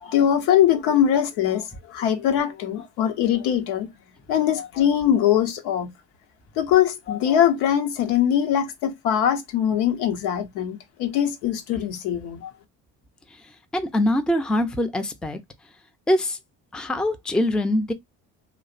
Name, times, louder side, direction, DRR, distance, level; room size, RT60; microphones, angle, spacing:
voice 1, 0.0-3.9 4.3-5.9 6.6-12.5, left 10 dB, 80° left, 0.7 m, -22 dB
voice 2, 13.7-15.4 16.1-16.4 16.7-17.9, left 1 dB, ahead, 0.4 m, -23 dB
2.6 x 2.0 x 2.4 m
supercardioid pair, 65°, 41 cm